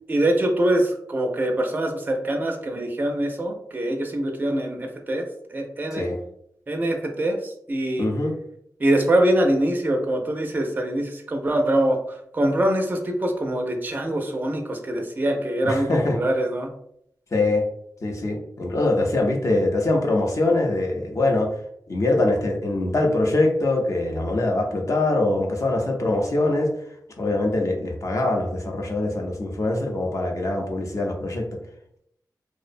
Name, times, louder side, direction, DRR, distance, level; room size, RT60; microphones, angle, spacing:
voice 1, 0.1-6.1 6.7-8.1 8.8-16.7, right 1 dB, 25° right, 2 dB, 0.4 m, -24 dB
voice 2, 8.0-8.3 15.6-16.2 17.3-17.6 18.0-21.6 21.9-26.7 27.2-31.5, left 2 dB, 45° left, 1 dB, 0.5 m, -23 dB
2.6 x 2.0 x 2.4 m, 0.73 s
wide cardioid pair, 90°, 7 cm